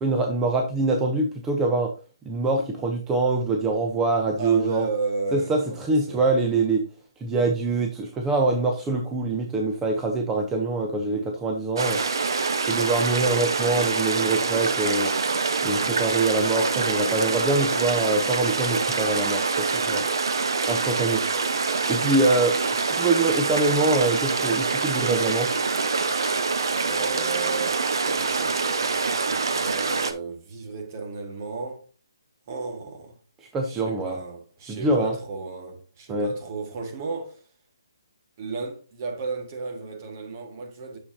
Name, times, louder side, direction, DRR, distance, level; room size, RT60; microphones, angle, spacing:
voice 1, 0.0-1.9 2.2-4.9 5.3-6.8 7.2-12.0 12.7-15.1 15.6-20.0 20.7-21.2 21.9-25.5 26.0-26.2 33.5-34.2 34.7-35.1 36.1-36.3, right 3 dB, 15° right, 0.8 m, -24 dB
voice 2, 4.4-6.4 11.0-11.3 26.8-31.8 32.5-33.2 33.7-37.4 38.4-41.0, right 4 dB, 40° right, 1.7 m, -34 dB
sound 1, 11.8-30.1, right 4 dB, 65° right, 0.9 m, -25 dB
8.5 x 6.6 x 2.7 m
figure-of-eight pair, 145°, 2 cm